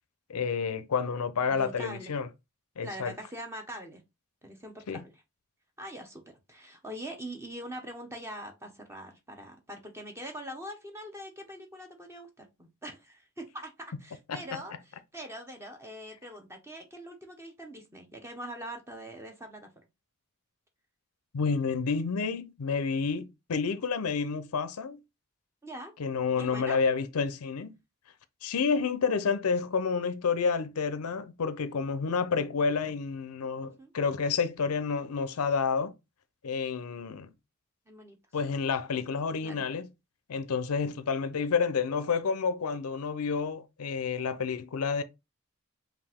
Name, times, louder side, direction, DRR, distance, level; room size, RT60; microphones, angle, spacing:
voice 1, 0.3-2.3 2.8-3.1 4.9-5.0 14.3-14.4 21.3-25.0 26.0-27.7 28.4-35.9 36.4-37.3 38.3-39.9 40.3-45.0, left 5 dB, 85° left, 0.5 m, -29 dB
voice 2, 1.5-2.1 2.8-4.0 4.4-5.1 5.8-19.7 25.6-25.9 26.4-26.8 33.6-33.9 36.8-36.9 37.9-38.2 39.4-39.6, equal, 10° right, 1.0 m, -43 dB
5.2 x 2.6 x 3.5 m
head